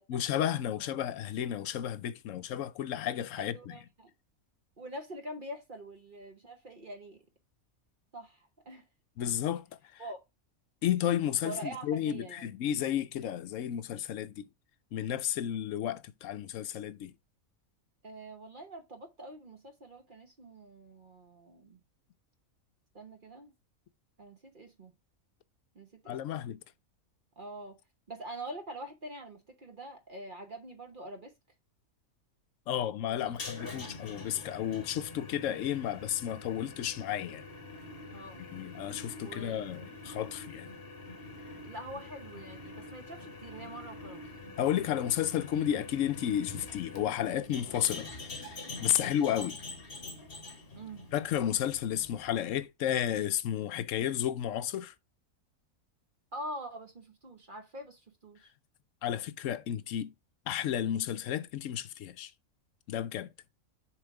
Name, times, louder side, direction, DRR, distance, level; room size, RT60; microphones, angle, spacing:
voice 1, 0.1-3.7 9.2-9.7 9.9-10.0 10.8-14.5 14.9-17.1 26.1-26.6 32.7-37.4 38.4-40.7 44.6-49.6 51.1-54.9 59.0-60.1 60.5-62.3 62.9-63.3, left 10 dB, 70° left, 0.9 m, -32 dB
voice 2, 3.4-4.1 4.8-7.2 8.1-8.8 10.0-10.2 11.4-12.5 18.0-21.8 22.9-23.5 24.2-24.9 25.7-26.2 27.4-27.8 28.1-31.3 33.1-33.3 33.6-33.7 38.1-38.4 39.2-39.9 41.6-44.3 49.0-49.2 50.7-51.1 56.3-58.5, right 1 dB, 40° right, 1.0 m, -45 dB
sound 1, 33.3-52.7, left 2 dB, 45° left, 1.6 m, -45 dB
7.0 x 3.4 x 4.7 m
omnidirectional pair, 1.5 m